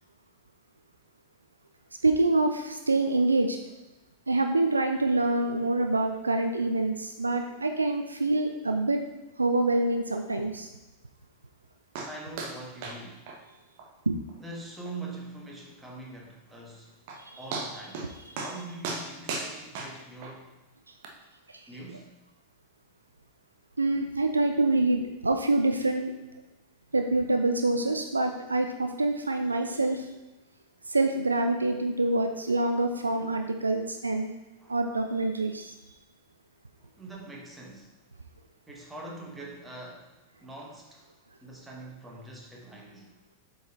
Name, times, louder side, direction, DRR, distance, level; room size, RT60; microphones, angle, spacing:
voice 1, 2.0-3.6 4.3-9.0 9.4-10.7 14.1-14.2 17.3-17.4 23.8-26.1 26.9-30.1 30.9-34.3 34.7-35.7, right 2 dB, 80° right, 5 dB, 0.5 m, -26 dB
sound 1, 11.9-12.1 12.4-12.6 12.8-13.0 13.3-13.4 13.8-13.9 14.3-14.4 14.8-14.9 16.6-16.7 17.1-17.2 17.5-18.1 18.4-18.6 18.8-20.3 21.0-21.1, right 4 dB, 45° right, 1.0 m, -35 dB
voice 2, 12.0-13.3 14.4-17.0 17.3-20.5 21.7-22.1 34.6-34.7 36.8-37.9 38.7-41.1 41.4-43.1, right 2 dB, 10° right, -2 dB, 1.5 m, -43 dB
7.8 x 5.0 x 3.1 m, 1.0 s
figure-of-eight pair, 90°, 0 cm